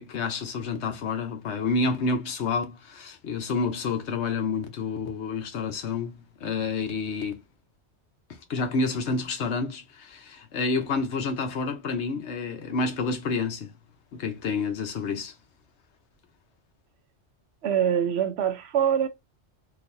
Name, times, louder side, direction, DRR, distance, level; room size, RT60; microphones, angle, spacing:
voice 1, 0.0-7.4 8.5-13.7 14.1-15.3, left 4 dB, 75° left, 1.1 m, -29 dB
voice 2, 17.6-19.1, right 8 dB, 70° right, 0.9 m, -24 dB
3.8 x 2.5 x 2.6 m
omnidirectional pair, 1.2 m